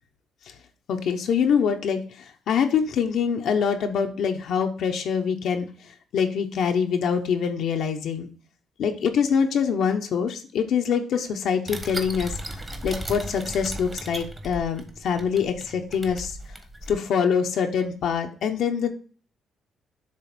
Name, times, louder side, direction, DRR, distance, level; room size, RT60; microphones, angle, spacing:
voice 1, 0.9-2.0 2.5-5.7 6.1-8.3 8.8-12.3 12.8-16.4 16.9-18.9, left 7 dB, 75° left, 4 dB, 1.0 m, -24 dB
sound 1, 11.7-16.9, right 1 dB, 20° right, 1.3 m, -36 dB
7.5 x 3.2 x 6.1 m, 0.40 s
cardioid pair, 90°, 0 cm